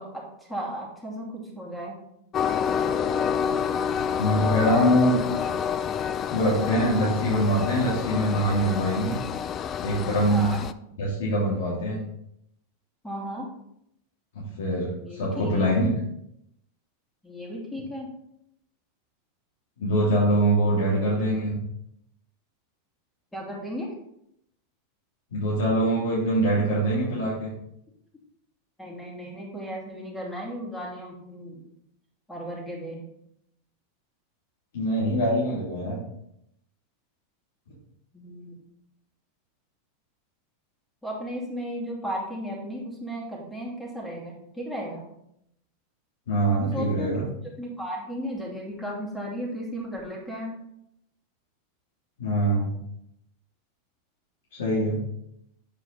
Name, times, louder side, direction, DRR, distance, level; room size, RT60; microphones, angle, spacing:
voice 1, 0.0-2.0 10.3-10.7 13.0-13.5 15.0-15.7 17.2-18.1 23.3-23.9 28.8-31.7 32.3-33.1 38.1-38.6 41.0-45.0 46.6-47.2 47.6-50.5, equal, 5° left, -3 dB, 2.6 m, -35 dB
Train, 2.3-10.7, left 7 dB, 30° left, 0.4 m, -28 dB
voice 2, 4.2-5.2 6.3-9.2 9.8-10.4 11.0-12.0 14.3-15.9 19.8-21.6 25.3-27.5 34.7-36.0 46.3-47.2 52.2-52.7 54.6-55.0, right 1 dB, 90° left, -7 dB, 3.0 m, -23 dB
8.9 x 4.8 x 4.0 m, 0.77 s
supercardioid pair, 140°, 0 cm